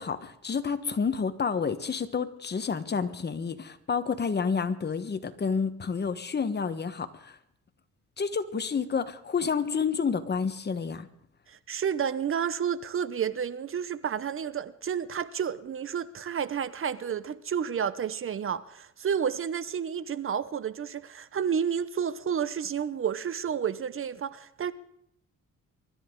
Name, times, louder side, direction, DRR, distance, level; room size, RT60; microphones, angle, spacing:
voice 1, 0.0-7.4 8.2-11.1, left 5 dB, 35° left, 1.2 m, -29 dB
voice 2, 11.5-24.7, right 8 dB, 45° right, 0.8 m, -31 dB
24.0 x 13.0 x 3.8 m
cardioid pair, 90°, 30 cm